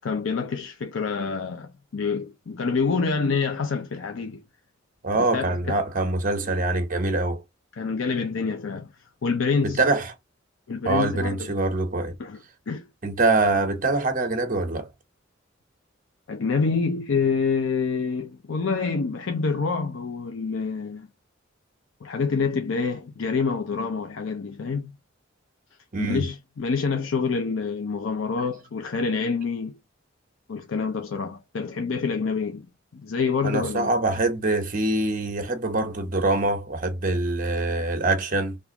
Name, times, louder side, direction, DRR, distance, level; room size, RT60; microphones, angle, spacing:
voice 1, 0.0-4.4 5.3-5.8 7.7-8.9 9.2-9.8 10.7-11.5 12.2-12.9 16.3-21.1 22.0-24.9 26.0-29.8 30.5-32.7 32.9-33.9, left 5 dB, 80° left, 0.5 m, -27 dB
voice 2, 5.0-7.4 9.6-10.1 10.8-12.1 13.0-14.9 25.9-26.3 33.4-38.6, right 2 dB, 45° right, 1.0 m, -24 dB
3.6 x 2.5 x 2.8 m
head